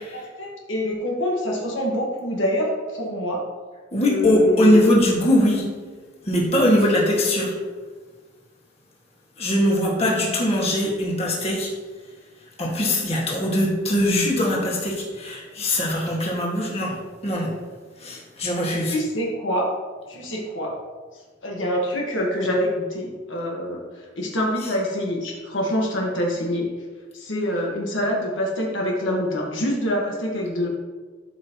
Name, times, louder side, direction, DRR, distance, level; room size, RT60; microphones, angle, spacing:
voice 1, 0.1-3.4 3.9-4.9 6.7-6.8 18.6-19.7 20.1-20.7 21.4-26.6 27.1-30.7, equal, 70° left, -2 dB, 1.4 m, -26 dB
voice 2, 3.9-5.6 6.2-7.6 9.4-11.7 12.6-16.9 17.2-17.5 18.0-19.0, left 1 dB, 30° left, -3 dB, 1.9 m, -21 dB
12.5 x 5.6 x 3.0 m, 1.4 s
head